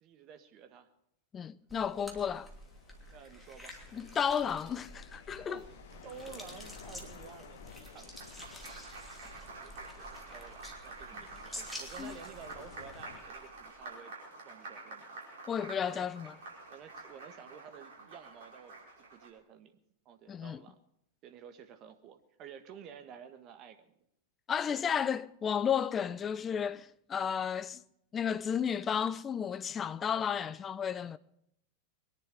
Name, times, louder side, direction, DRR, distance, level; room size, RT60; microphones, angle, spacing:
voice 1, 0.0-0.9 3.1-3.8 5.5-5.8 6.0-8.4 9.4-14.1 14.4-15.1 15.9-16.1 16.7-19.7 20.0-20.8 21.2-23.9, right 7 dB, 35° right, 1.6 m, -52 dB
voice 2, 1.3-2.5 3.9-5.6 12.0-12.2 15.5-16.3 20.3-20.6 24.5-27.8 28.1-31.2, left 7 dB, 25° left, 0.6 m, -33 dB
sound 1, 1.7-13.9, equal, 5° left, 2.8 m, -50 dB
sound 2, 1.9-13.2, left 7 dB, 60° left, 1.4 m, -55 dB
Applause, 7.6-19.3, right 3 dB, 55° right, 5.3 m, -48 dB
23.0 x 10.5 x 5.1 m
figure-of-eight pair, 90°, 0 cm